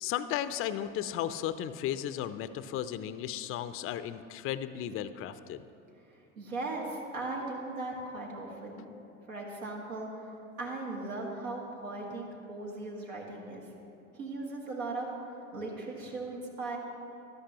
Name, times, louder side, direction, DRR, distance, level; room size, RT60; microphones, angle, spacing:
voice 1, 0.0-5.6, left 11 dB, 35° left, 13 dB, 0.5 m, -35 dB
voice 2, 6.4-8.9 9.3-10.1 10.6-13.6 14.2-15.1 15.5-16.8, right 2 dB, 80° right, -2 dB, 2.0 m, -38 dB
13.0 x 11.0 x 2.9 m, 2.8 s
hypercardioid pair, 80°, 40 cm